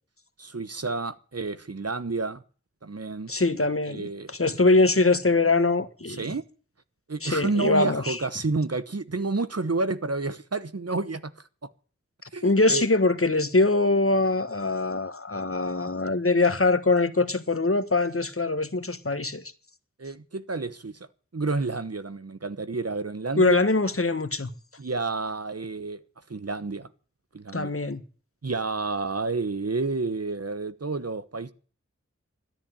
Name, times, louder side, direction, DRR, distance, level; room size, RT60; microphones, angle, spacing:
voice 1, 0.4-2.4 2.8-3.3 3.9-4.4 6.1-6.4 7.1-11.3 11.6-11.7 12.3-12.9 20.0-21.1 21.3-23.6 24.8-26.0 26.3-26.9 27.3-27.8 28.4-31.5, right 3 dB, 55° right, 1.1 m, -30 dB
voice 2, 3.3-6.3 7.2-8.2 12.4-19.4 23.4-24.5 27.5-28.0, left 3 dB, 50° left, 1.5 m, -23 dB
13.0 x 10.5 x 10.0 m
wide cardioid pair, 45°, 29 cm